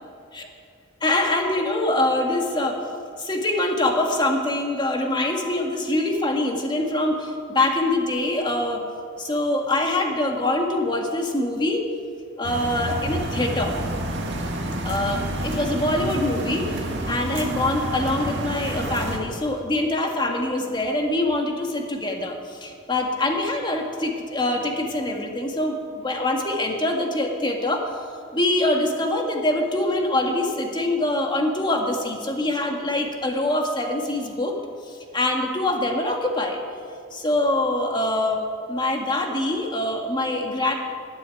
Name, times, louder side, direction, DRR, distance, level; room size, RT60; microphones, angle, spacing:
voice 1, 1.0-2.8 3.2-8.8 9.2-11.9 12.4-13.8 14.8-16.7 17.1-27.9 28.3-34.6 34.9-36.6 37.1-38.4 38.7-40.7, left 1 dB, 25° left, 2 dB, 1.7 m, -24 dB
sound 1, 12.4-19.2, right 1 dB, 65° right, 2.0 m, -29 dB
12.5 x 9.8 x 9.1 m, 2.3 s
head